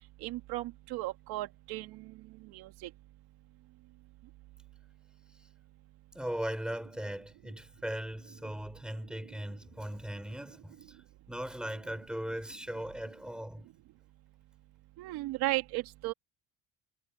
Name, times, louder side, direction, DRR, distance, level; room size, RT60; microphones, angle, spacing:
voice 1, 0.2-1.9 2.5-2.7 15.0-16.1, right 19 dB, 80° right, 2.2 m, -35 dB
voice 2, 6.1-11.0 11.3-13.7, right 1 dB, ahead, 5.4 m, -38 dB
cardioid pair, 135°, 38 cm